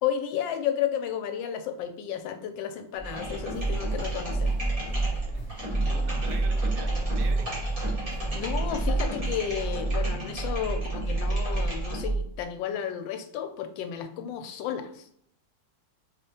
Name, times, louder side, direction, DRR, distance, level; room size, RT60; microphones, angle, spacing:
voice 1, 0.0-4.5 8.3-15.0, left 9 dB, 90° left, 7 dB, 1.3 m, -32 dB
sound 1, 3.0-12.3, right 2 dB, 20° right, 1.1 m, -28 dB
sound 2, 3.1-8.8, left 1 dB, 65° left, 0.5 m, -46 dB
voice 2, 5.1-7.7, right 6 dB, 75° right, 5 dB, 1.2 m, -46 dB
4.1 x 3.3 x 2.8 m, 0.67 s
omnidirectional pair, 2.0 m